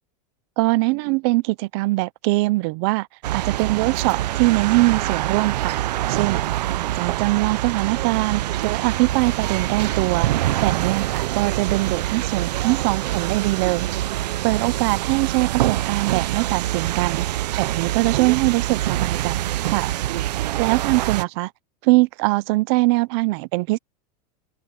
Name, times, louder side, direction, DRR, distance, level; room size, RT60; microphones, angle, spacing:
voice 1, 0.6-3.1 3.3-5.8 6.1-6.4 6.8-10.3 10.6-13.9 14.4-19.9 20.6-21.5 21.8-23.8, right 23 dB, 40° right, 0.6 m, -22 dB
sound 1, 3.2-21.2, right 14 dB, 90° right, 0.7 m, -25 dB
supercardioid pair, 170°, 21 cm